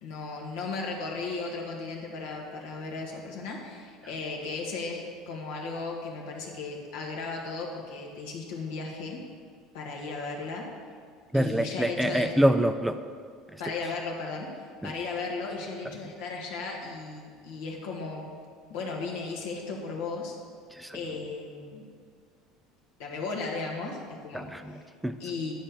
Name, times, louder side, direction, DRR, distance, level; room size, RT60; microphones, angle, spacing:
voice 1, 0.0-9.2 9.7-10.7 11.3-12.3 13.6-14.5 14.8-18.3 18.7-20.4 20.9-21.9 23.0-24.5 25.2-25.5, left 3 dB, 85° left, -1 dB, 1.7 m, -35 dB
voice 2, 11.3-13.0 13.5-13.6 14.8-14.9 20.7-21.0 24.3-25.2, right 1 dB, 5° right, 9 dB, 0.3 m, -26 dB
10.5 x 4.3 x 6.8 m, 2.1 s
cardioid pair, 130°, 0 cm